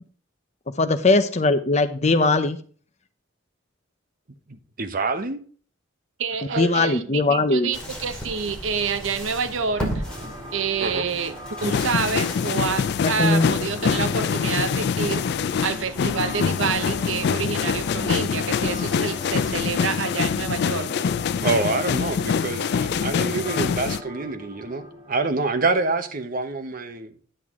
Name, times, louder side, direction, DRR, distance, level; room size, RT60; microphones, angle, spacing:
voice 1, 0.8-2.6 6.6-7.7 13.0-13.5, left 3 dB, 35° left, 0.7 m, -20 dB
voice 2, 4.5-5.4 6.5-6.6 10.8-11.1 21.4-27.1, right 3 dB, 45° right, 0.9 m, -26 dB
voice 3, 6.2-10.0 10.5-11.3 11.6-15.3 15.6-21.0, right 5 dB, 70° right, 0.7 m, -28 dB
sound 1, 7.7-19.6, equal, 5° left, 2.5 m, -38 dB
sound 2, 9.7-25.7, equal, 25° right, 2.9 m, -41 dB
sound 3, 11.6-24.0, left 6 dB, 55° left, 0.3 m, -25 dB
10.0 x 7.9 x 3.7 m
head